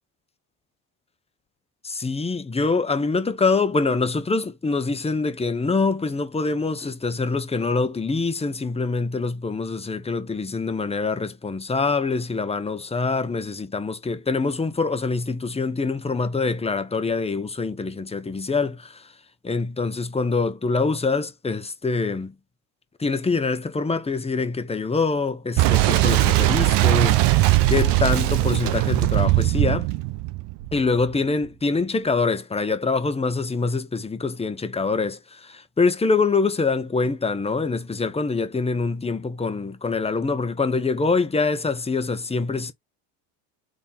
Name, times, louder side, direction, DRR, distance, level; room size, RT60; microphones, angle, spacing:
voice 1, 1.8-19.0 19.4-22.3 23.0-27.2 27.7-29.9 30.7-42.7, left 4 dB, 15° left, 1.0 m, -25 dB
Boom, 25.6-31.1, right 17 dB, 60° right, 0.9 m, -20 dB
3.6 x 3.5 x 4.1 m
hypercardioid pair, 80°, 46 cm